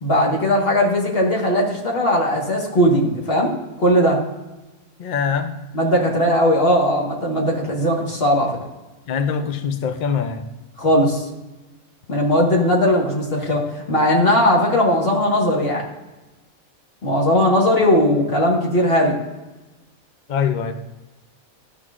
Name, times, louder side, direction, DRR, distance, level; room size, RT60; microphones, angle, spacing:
voice 1, 0.0-3.5 3.8-4.2 5.7-8.5 10.8-11.2 12.1-15.8 17.0-19.1, equal, 40° left, -2 dB, 1.6 m, -18 dB
voice 2, 5.0-5.5 9.1-10.5 20.3-20.7, left 6 dB, 90° left, 8 dB, 0.4 m, -23 dB
12.5 x 5.8 x 2.4 m, 1.1 s
omnidirectional pair, 1.5 m